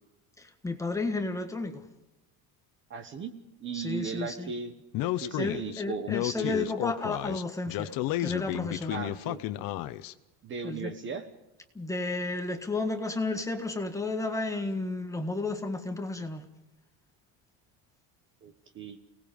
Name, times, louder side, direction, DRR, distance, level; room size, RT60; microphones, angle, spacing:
voice 1, 0.4-1.8 3.7-4.5 5.4-9.0 10.6-10.9 11.7-16.4, left 3 dB, 10° left, 4 dB, 1.6 m, -32 dB
voice 2, 2.9-3.3 3.6-4.8 5.1-6.5 8.9-9.4 10.4-11.3 18.4-19.0, right 5 dB, 30° right, 10 dB, 1.3 m, -37 dB
Speech, 4.9-10.1, left 15 dB, 55° left, 1.0 m, -32 dB
29.0 x 19.0 x 5.3 m, 0.94 s
cardioid pair, 180°, 41 cm